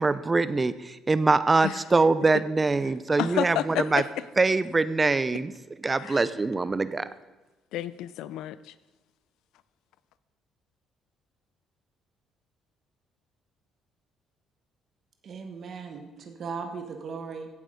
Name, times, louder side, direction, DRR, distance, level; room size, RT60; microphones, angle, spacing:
voice 1, 0.0-4.0 4.4-5.5 5.8-7.0, right 3 dB, 15° right, 0.5 m, -23 dB
voice 2, 3.2-4.1 6.0-6.3 7.7-8.7, left 12 dB, 85° left, 0.5 m, -31 dB
voice 3, 15.2-17.5, right 5 dB, 40° right, 1.1 m, -37 dB
16.0 x 8.0 x 5.1 m
cardioid pair, 160°, 0 cm